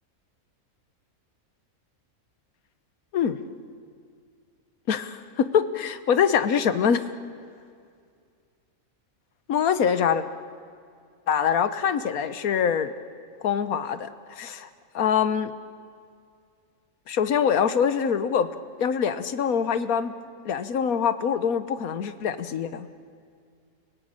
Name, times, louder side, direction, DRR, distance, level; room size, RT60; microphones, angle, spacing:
voice 1, 4.9-7.0 9.5-10.2 11.3-12.9 13.4-14.6 15.0-15.5 17.1-18.5 18.8-20.1 20.4-22.9, left 7 dB, 80° left, 12 dB, 1.5 m, -24 dB
30.0 x 18.0 x 8.8 m, 2.3 s
omnidirectional pair, 1.5 m